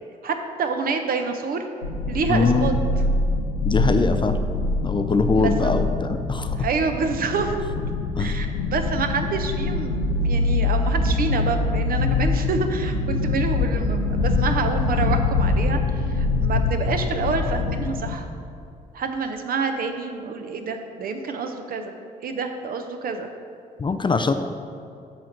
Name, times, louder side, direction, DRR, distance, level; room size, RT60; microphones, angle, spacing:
voice 1, 0.2-1.7 2.1-2.7 5.4-5.8 6.6-7.6 8.2-18.3 18.9-21.9 22.2-23.3, right 5 dB, 45° right, 6 dB, 0.9 m, -27 dB
sound 1, 1.8-18.2, left 3 dB, 85° left, 0.7 m, -24 dB
voice 2, 2.3-2.7 3.6-4.4 4.8-6.6 8.2-8.4 23.8-24.3, left 4 dB, 25° left, 7 dB, 0.6 m, -22 dB
13.5 x 5.0 x 4.5 m, 2.6 s
figure-of-eight pair, 45°, 21 cm